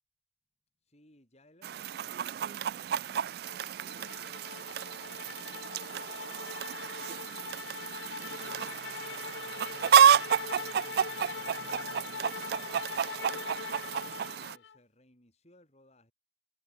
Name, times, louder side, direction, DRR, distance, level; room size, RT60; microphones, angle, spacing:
voice 1, 0.8-11.8 12.4-13.5 14.3-16.1, left 1 dB, 35° left, 6.0 m, -65 dB
Chicken rooster, 1.6-14.6, right 8 dB, 55° right, 0.3 m, -30 dB
sound 1, 3.4-14.8, left 6 dB, 75° left, 0.6 m, -42 dB
head